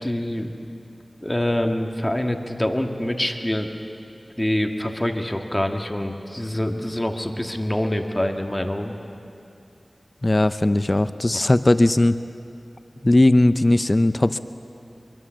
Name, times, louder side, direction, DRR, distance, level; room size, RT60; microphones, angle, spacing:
voice 1, 0.0-0.5 1.2-3.7 4.4-9.0 11.3-11.5, left 1 dB, 20° left, 4 dB, 1.9 m, -25 dB
voice 2, 10.2-12.2 13.0-14.4, left 1 dB, 35° left, 12 dB, 0.7 m, -18 dB
24.0 x 24.0 x 7.7 m, 2.6 s
wide cardioid pair, 55°, 0 cm